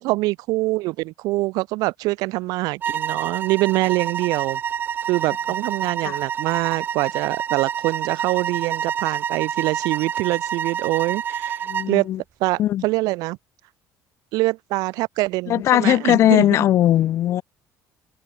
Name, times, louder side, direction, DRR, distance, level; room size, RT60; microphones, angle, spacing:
voice 1, 0.0-4.6 5.1-12.1 12.4-13.4 14.3-16.6, right 21 dB, 80° right, 1.1 m, -24 dB
sound 1, 2.8-12.0, right 8 dB, 35° right, 3.3 m, -28 dB
voice 2, 11.7-12.2 12.6-12.8 15.5-17.4, left 12 dB, 45° left, 1.1 m, -19 dB
open air
cardioid pair, 170°, 6 cm